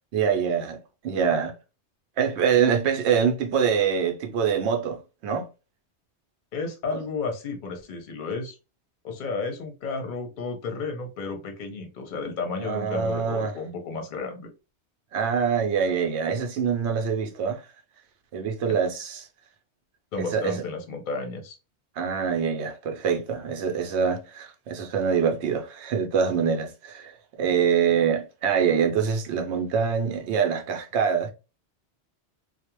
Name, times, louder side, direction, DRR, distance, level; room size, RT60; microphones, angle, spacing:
voice 1, 0.1-0.8 1.0-1.5 2.2-5.4 6.9-7.0 12.6-13.6 15.1-17.6 18.3-19.2 20.2-20.6 22.0-31.3, right 7 dB, 75° right, 0.8 m, -25 dB
voice 2, 6.5-8.6 9.0-14.5 20.1-21.6, left 4 dB, 50° left, 0.7 m, -32 dB
2.3 x 2.1 x 2.9 m
omnidirectional pair, 1.2 m